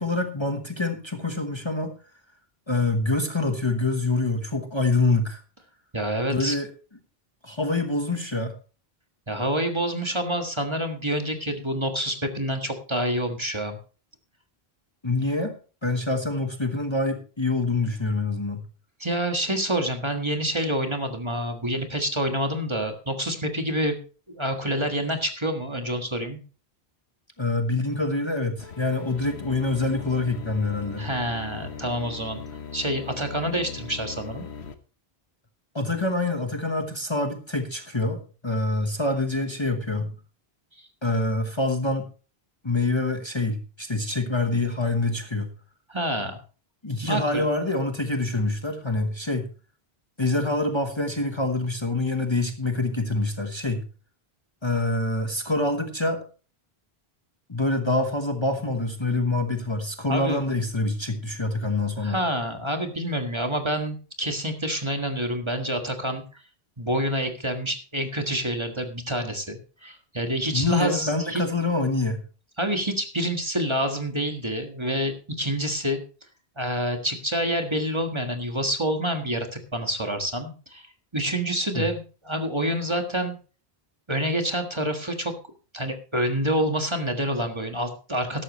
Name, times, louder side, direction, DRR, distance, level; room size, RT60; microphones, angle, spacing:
voice 1, 0.0-1.9 2.7-5.4 6.3-6.7 7.4-8.5 15.0-15.5 15.8-18.6 27.4-31.1 35.7-40.1 41.0-42.0 42.6-45.5 46.8-49.5 50.2-53.9 54.6-56.2 57.5-62.2 70.5-72.2 81.7-81.9, left 2 dB, 25° left, 5 dB, 1.2 m, -26 dB
voice 2, 5.9-6.6 9.3-13.8 19.0-24.0 24.3-26.4 31.0-32.4 32.7-34.4 45.9-46.4 47.0-47.4 60.1-60.4 62.0-66.2 66.8-71.4 72.6-76.0 76.6-80.9 81.1-83.4 84.1-85.3 85.7-88.4, right 1 dB, 25° right, 4 dB, 1.6 m, -27 dB
sound 1, 28.6-34.7, left 6 dB, 85° left, 1.4 m, -39 dB
13.5 x 11.5 x 3.1 m, 0.36 s
omnidirectional pair, 1.1 m